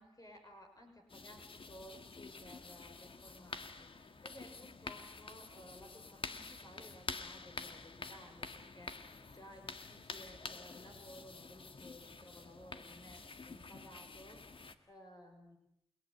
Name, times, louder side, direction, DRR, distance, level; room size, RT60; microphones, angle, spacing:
voice 1, 0.0-15.6, equal, 40° left, 3 dB, 5.5 m, -57 dB
sound 1, 1.1-14.8, left 4 dB, 70° left, 1.7 m, -48 dB
29.0 x 19.0 x 9.5 m, 0.81 s
wide cardioid pair, 55°, 9 cm